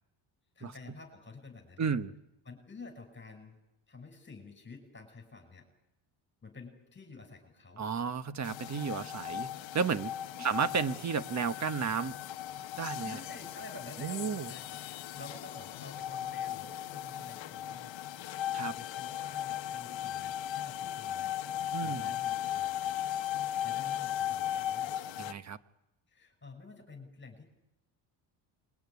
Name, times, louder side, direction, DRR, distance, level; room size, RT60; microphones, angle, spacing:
voice 1, 0.5-1.9 2.4-3.6 3.9-5.7 6.4-7.9 10.4-10.8 13.0-18.2 18.6-21.4 21.8-23.4 23.6-25.0 26.1-27.4, left 3 dB, 25° left, 4 dB, 6.0 m, -50 dB
voice 2, 1.8-2.1 7.8-9.5 9.7-10.1 10.4-12.2 12.8-13.2 14.0-14.5 18.5-18.7 21.7-22.1 25.2-25.6, right 6 dB, 35° right, 12 dB, 1.3 m, -32 dB
sound 1, 8.4-25.3, left 11 dB, 65° left, 1.1 m, -37 dB
28.0 x 22.0 x 9.7 m, 0.90 s
cardioid pair, 115°, 48 cm